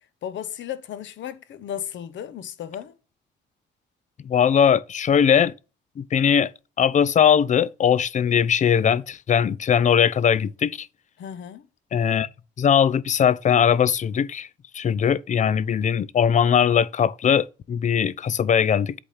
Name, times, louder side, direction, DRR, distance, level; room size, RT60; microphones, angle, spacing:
voice 1, 0.0-2.9 11.2-11.7, left 10 dB, 70° left, 0.9 m, -35 dB
voice 2, 4.2-5.5 6.0-6.5 6.8-10.9 11.9-12.3 12.6-14.5 14.7-18.9, left 8 dB, 40° left, 0.4 m, -20 dB
8.2 x 3.4 x 5.6 m
cardioid pair, 90°, 20 cm